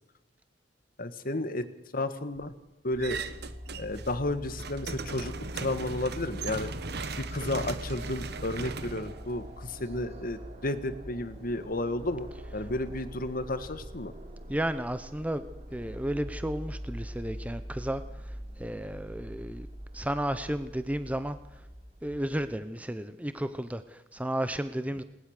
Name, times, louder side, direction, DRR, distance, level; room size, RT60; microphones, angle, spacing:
voice 1, 1.0-1.7 1.9-2.5 2.8-3.2 3.8-6.7 7.2-12.3 12.5-14.1, left 1 dB, 50° left, 11 dB, 1.6 m, -32 dB
sound 1, 2.9-22.5, equal, 35° right, 3.9 m, -43 dB
sound 2, 3.0-4.1 4.4-9.8, right 4 dB, 60° right, 1.3 m, -39 dB
voice 2, 14.5-15.4 15.7-19.7 19.9-21.4 22.0-25.0, right 1 dB, 10° right, 11 dB, 0.8 m, -33 dB
20.5 x 19.5 x 6.6 m, 1.0 s
head